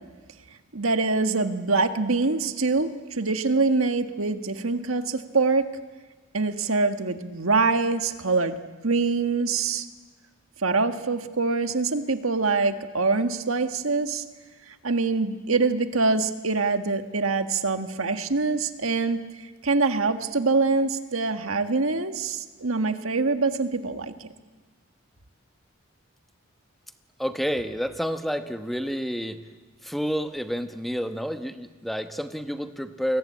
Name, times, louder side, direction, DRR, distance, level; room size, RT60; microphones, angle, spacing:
voice 1, 0.7-5.7 6.3-8.6 8.8-9.8 10.6-14.2 14.8-19.2 19.6-24.1, right 3 dB, 80° right, 8 dB, 1.6 m, -24 dB
voice 2, 27.2-29.4 29.8-33.2, equal, ahead, 7 dB, 1.1 m, -29 dB
29.5 x 22.0 x 8.6 m, 1.3 s
head